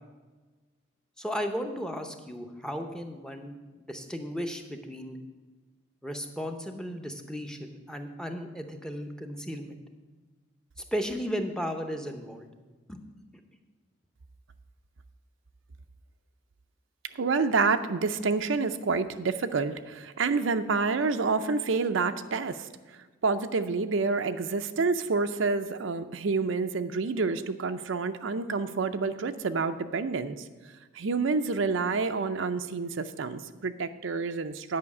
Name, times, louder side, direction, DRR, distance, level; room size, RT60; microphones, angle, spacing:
voice 1, 1.2-5.2 6.0-9.8 10.8-12.5 12.9-13.0, equal, 5° left, 5 dB, 0.7 m, -35 dB
voice 2, 17.2-22.7 23.2-30.4 30.9-34.8, right 4 dB, 70° right, 10 dB, 0.5 m, -28 dB
9.5 x 5.7 x 8.4 m, 1.3 s
head